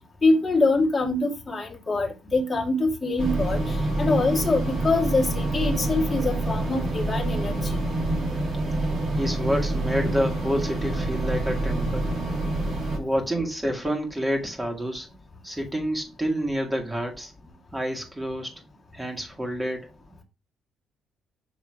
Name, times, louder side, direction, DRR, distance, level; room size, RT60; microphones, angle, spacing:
voice 1, 0.2-7.8, left 2 dB, 20° left, 1.7 m, -24 dB
sound 1, 3.2-13.0, right 2 dB, 40° right, 2.2 m, -27 dB
voice 2, 9.2-12.1 13.0-15.1 15.4-17.3 17.7-18.5 18.9-19.9, equal, 15° right, 2.1 m, -28 dB
6.2 x 3.5 x 4.8 m
cardioid pair, 90°, 0 cm